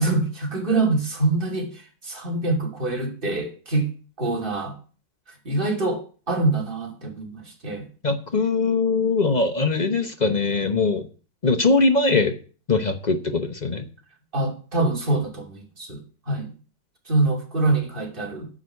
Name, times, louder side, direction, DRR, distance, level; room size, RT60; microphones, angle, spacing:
voice 1, 0.0-3.9 4.2-4.8 5.4-7.9 14.3-16.5 17.1-18.5, right 2 dB, 25° right, 1 dB, 2.9 m, -25 dB
voice 2, 8.0-11.1 11.4-12.3 12.7-13.8, left 3 dB, 40° left, 8 dB, 0.6 m, -21 dB
9.9 x 6.4 x 8.0 m, 0.39 s
omnidirectional pair, 2.2 m